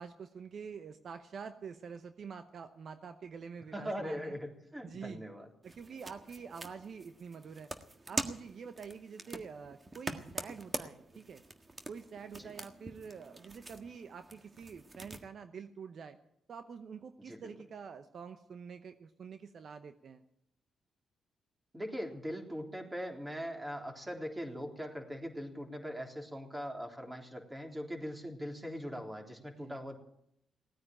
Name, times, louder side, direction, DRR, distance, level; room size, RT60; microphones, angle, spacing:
voice 1, 0.0-4.4 4.8-5.2 5.6-7.7 8.1-11.4 11.9-16.2 16.5-20.2 29.6-29.8, right 6 dB, 60° right, 9 dB, 0.9 m, -47 dB
voice 2, 3.7-5.5 12.4-12.6 17.3-17.5 21.7-30.0, equal, 15° right, 2 dB, 3.6 m, -41 dB
sound 1, 5.6-15.2, right 2 dB, 30° right, 1.6 m, -44 dB
17.5 x 9.4 x 8.8 m, 0.77 s
supercardioid pair, 65°, 0 cm